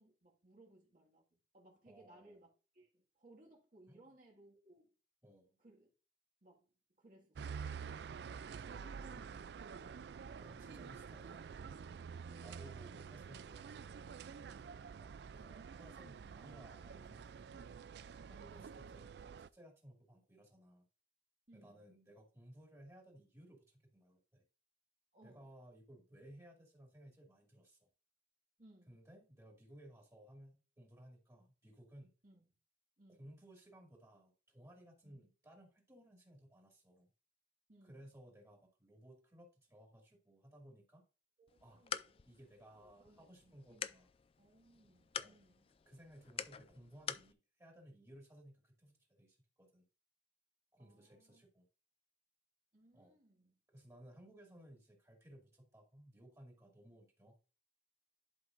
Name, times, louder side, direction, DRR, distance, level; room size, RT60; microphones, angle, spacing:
voice 1, 0.0-5.0 5.6-5.9 6.4-8.3 8.8-10.0 10.5-10.9 12.3-12.8 21.5-21.9 25.1-25.5 28.6-29.0 32.2-32.5 33.0-33.3 35.0-35.3 37.7-38.1 41.4-44.0 44.4-45.7 50.8-51.4 52.7-53.6, right 1 dB, 45° right, 1.9 m, -65 dB
voice 2, 1.9-2.4 3.9-4.0 5.2-5.6 8.6-9.3 10.3-11.5 12.4-13.6 15.0-17.8 18.3-20.8 21.5-24.4 25.2-27.9 28.9-32.1 33.2-37.1 37.8-41.0 41.6-41.8 42.2-44.1 45.2-45.4 45.9-49.8 50.7-51.7 52.9-53.2 53.7-57.4, right 1 dB, 15° right, 2.3 m, -60 dB
sound 1, 7.4-19.5, right 6 dB, 65° right, 0.3 m, -49 dB
sound 2, 41.5-47.3, left 8 dB, 30° left, 0.3 m, -47 dB
11.0 x 5.1 x 2.6 m
head